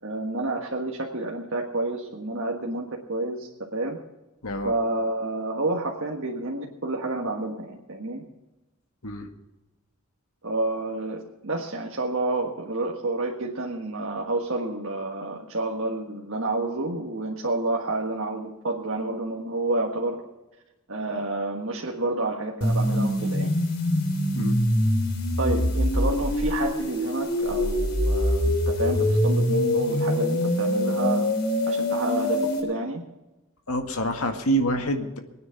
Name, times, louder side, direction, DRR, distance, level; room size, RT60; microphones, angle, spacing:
voice 1, 0.0-4.0 4.6-8.2 10.4-20.2 20.9-23.5 25.4-31.3 31.7-33.0, right 2 dB, 65° right, -1 dB, 1.6 m, -29 dB
sound 1, 22.6-32.6, left 1 dB, 50° left, 3.4 m, -24 dB
voice 2, 33.7-35.2, right 1 dB, 85° left, 5 dB, 1.9 m, -26 dB
22.0 x 9.5 x 5.9 m, 1.0 s
head